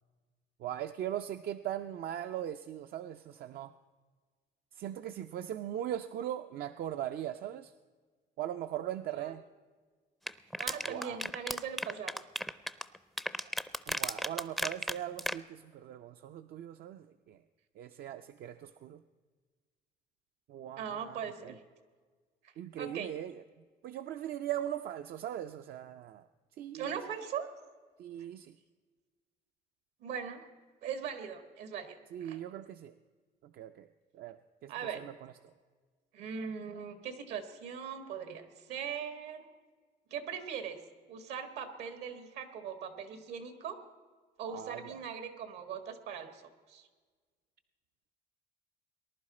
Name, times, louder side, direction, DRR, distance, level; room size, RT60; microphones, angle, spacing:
voice 1, 0.6-3.7 4.7-7.7 8.4-9.4 10.9-11.2 13.9-17.4 17.8-19.0 20.5-21.5 22.6-23.4 23.8-26.2 26.6-27.0 28.0-28.5 32.1-32.9 33.4-33.9 34.1-35.5 44.5-45.0, right 11 dB, 65° right, 9 dB, 0.5 m, -40 dB
sound 1, 10.3-15.3, equal, ahead, 0.4 m, -34 dB
voice 2, 10.6-12.2 13.4-13.5 20.8-21.6 22.4-23.1 26.7-27.5 28.2-28.3 30.0-30.5 30.8-32.4 34.7-35.0 36.1-39.5 40.1-40.8 41.1-43.8 44.4-46.4 46.7-46.9, right 7 dB, 80° right, 8 dB, 1.7 m, -40 dB
19.5 x 11.0 x 4.2 m, 1.5 s
cardioid pair, 110°, 17 cm